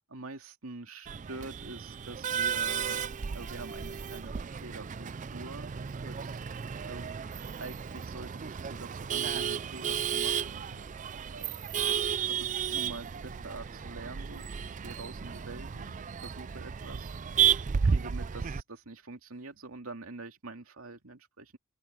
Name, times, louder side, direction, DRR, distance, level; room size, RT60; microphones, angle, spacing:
voice 1, 0.1-3.1 3.3-6.4 6.8-7.2 7.6-10.6 11.3-11.9 12.3-17.2 17.8-21.6, right 3 dB, 85° right, 2.5 m, -45 dB
Male speech man speaking / Laughter / Chatter, 1.1-18.6, right 7 dB, 35° right, 0.4 m, -33 dB
sound 1, 9.6-9.7 10.5-11.0 11.4-11.5 11.8-12.1 13.0-13.9 14.3-15.1 15.7-16.2 17.7-18.1 19.3-19.5 19.9-20.0, left 1 dB, 55° left, 8.0 m, -59 dB
open air
head